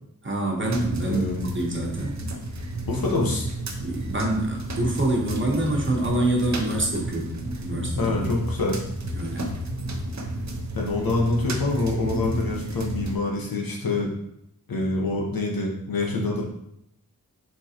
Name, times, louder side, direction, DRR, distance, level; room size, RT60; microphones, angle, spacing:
voice 1, 0.2-2.2 3.8-8.2 9.1-9.5, right 1 dB, 35° right, -1 dB, 1.1 m, -26 dB
sound 1, 0.7-13.2, right 1 dB, 55° right, 0.6 m, -32 dB
voice 2, 1.0-1.5 2.9-3.5 8.0-8.7 10.7-14.1 14.7-16.4, left 2 dB, 90° left, -1 dB, 1.0 m, -26 dB
4.5 x 3.7 x 2.9 m, 0.78 s
wide cardioid pair, 75°, 34 cm